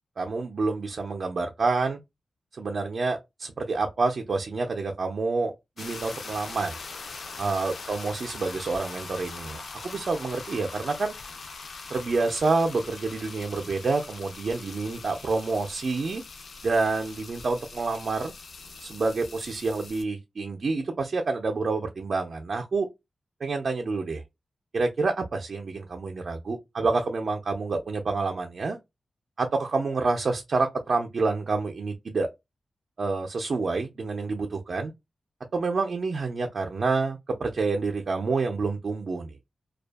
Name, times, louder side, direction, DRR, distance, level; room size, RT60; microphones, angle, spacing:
voice 1, 0.2-2.0 2.5-6.7 7.4-11.1 11.9-16.2 16.6-18.3 18.8-22.9 23.4-24.2 24.7-28.8 29.4-32.3 33.0-34.9 35.5-39.4, right 3 dB, 60° right, 0.4 m, -28 dB
sound 1, 5.8-20.0, left 4 dB, 65° left, 0.4 m, -42 dB
2.5 x 2.2 x 2.2 m
wide cardioid pair, 100°, 0 cm